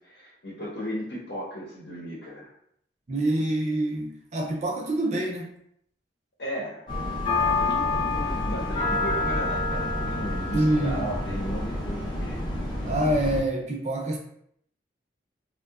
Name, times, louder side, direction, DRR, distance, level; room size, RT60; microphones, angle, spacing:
voice 1, 0.0-2.5 6.4-6.9 7.4-12.4, equal, 65° left, -7 dB, 0.8 m, -36 dB
voice 2, 3.1-5.5 10.5-11.1 12.9-14.2, right 1 dB, 40° right, 0 dB, 0.4 m, -26 dB
sound 1, 6.9-13.4, left 2 dB, 25° left, 0.6 m, -28 dB
2.7 x 2.2 x 2.3 m, 0.70 s
head